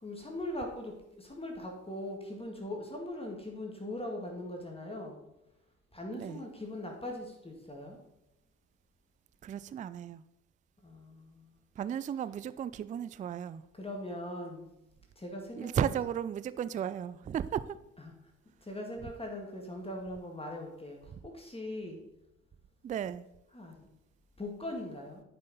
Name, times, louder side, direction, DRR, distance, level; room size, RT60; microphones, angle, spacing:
voice 1, 0.0-5.2 5.9-8.0 10.8-11.5 13.8-14.7 15.2-15.9 18.0-18.1 18.6-22.0 23.5-23.9 24.4-25.2, left 1 dB, 15° left, 1.9 m, -40 dB
voice 2, 9.4-10.2 11.8-13.6 15.6-17.8 22.8-23.3, right 9 dB, 20° right, 0.3 m, -34 dB
9.8 x 5.5 x 4.1 m
hypercardioid pair, 50°, 37 cm